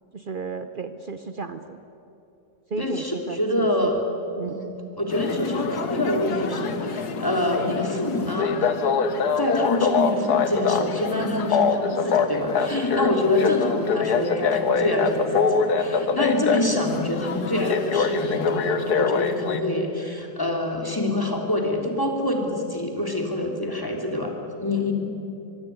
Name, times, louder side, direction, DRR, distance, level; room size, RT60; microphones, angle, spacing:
voice 1, 0.1-1.8 2.7-3.9 4.4-4.6, right 4 dB, 65° right, 10 dB, 0.5 m, -33 dB
voice 2, 2.8-4.1 4.4-8.7 9.3-24.9, left 1 dB, 10° left, 1 dB, 3.3 m, -26 dB
sound 1, 5.1-19.6, left 5 dB, 55° left, 1.7 m, -24 dB
24.0 x 24.0 x 9.6 m, 2.9 s
omnidirectional pair, 2.1 m